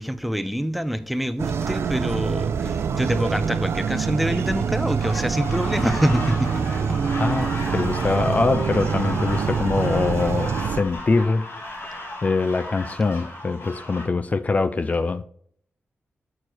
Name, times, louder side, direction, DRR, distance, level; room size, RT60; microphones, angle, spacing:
voice 1, 0.0-6.6, equal, ahead, 0.7 m, -26 dB
sound 1, 1.4-10.8, right 6 dB, 80° right, 0.5 m, -25 dB
sound 2, 1.6-1.8 2.6-2.8 3.4-3.6 4.0-4.2 4.6-4.9 5.3-5.5 6.1-6.5 6.9-7.2, left 1 dB, 20° left, 1.1 m, -39 dB
sound 3, 5.0-14.1, left 2 dB, 80° left, 2.8 m, -35 dB
voice 2, 7.2-11.5 11.9-15.2, left 3 dB, 35° left, 0.4 m, -23 dB
6.6 x 6.3 x 4.4 m
wide cardioid pair, 95°, 4 cm